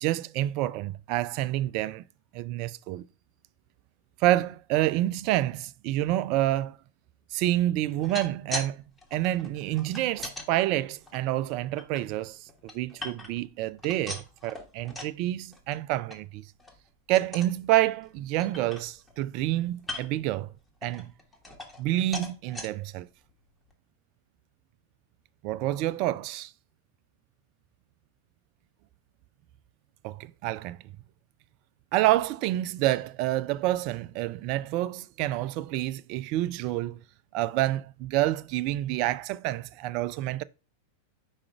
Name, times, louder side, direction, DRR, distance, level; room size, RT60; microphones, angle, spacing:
voice 1, 0.0-2.0 2.3-3.0 4.2-6.8 7.3-8.8 9.1-12.5 12.7-16.4 17.1-20.5 20.8-21.1 21.8-23.1 25.4-26.5 30.0-30.8 31.9-37.0 37.3-40.4, right 15 dB, 45° right, 0.3 m, -28 dB
sound 1, 7.9-8.7 9.0-10.5 11.0-12.0 12.5-13.5 13.8-15.2 15.5-15.8 16.1-16.2 16.6-16.8 17.2-17.6 18.0-18.1 18.4-19.2 19.8-20.3 20.8-21.9 22.1-22.7 23.3-23.4 23.7-23.8, left 2 dB, 10° left, 1.3 m, -39 dB
4.9 x 4.8 x 4.4 m
figure-of-eight pair, 90°, 0 cm